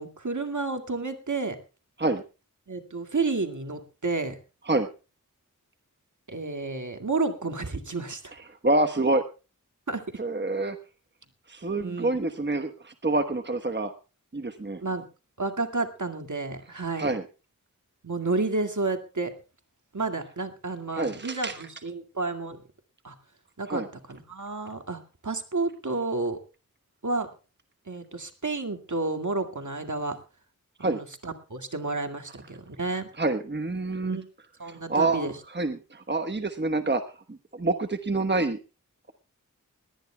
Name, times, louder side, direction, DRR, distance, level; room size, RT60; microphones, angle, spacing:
voice 1, 0.0-1.6 2.7-4.4 6.3-8.4 9.9-10.0 11.8-12.2 14.8-15.0 15.4-17.1 18.0-19.3 19.9-22.6 23.0-23.1 23.6-23.8 24.1-26.4 27.0-27.3 27.9-30.2 30.8-33.1 34.0-34.3 34.6-35.4, right 3 dB, 65° right, 6 dB, 2.1 m, -31 dB
voice 2, 8.6-9.2 10.2-10.8 11.5-13.9 14.3-14.8 17.0-17.2 20.9-21.6 23.7-23.9 30.8-31.0 33.2-34.2 34.7-37.0 37.3-38.6, right 2 dB, 35° right, 8 dB, 1.2 m, -27 dB
20.5 x 18.0 x 2.3 m, 0.32 s
wide cardioid pair, 50°, 33 cm